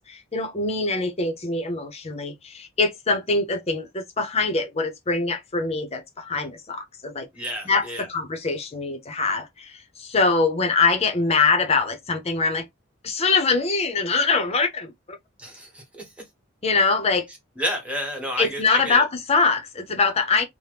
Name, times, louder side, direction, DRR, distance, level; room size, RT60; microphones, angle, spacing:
voice 1, 0.1-7.3 7.6-12.7 13.0-14.9 16.6-17.3 18.4-20.4, left 4 dB, 30° left, 0.7 m, -23 dB
voice 2, 7.3-8.1 15.4-16.0 17.6-19.0, equal, 5° right, 1.1 m, -30 dB
2.9 x 2.1 x 3.2 m
head